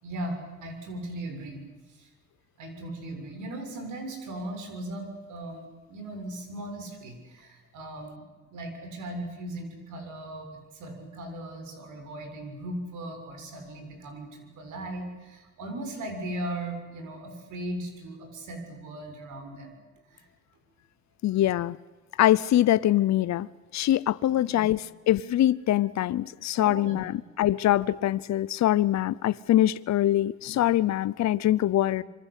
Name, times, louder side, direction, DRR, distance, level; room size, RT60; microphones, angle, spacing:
voice 1, 0.0-1.6 2.0-2.1 2.6-8.2 8.5-19.8 20.1-20.3 24.4-24.5 26.5-26.9, right 1 dB, 80° right, 7.0 m, -38 dB
voice 2, 21.2-21.8 22.2-23.5 23.7-32.0, left 13 dB, 65° left, 0.7 m, -23 dB
26.0 x 23.5 x 8.4 m
cardioid pair, 90°, 30 cm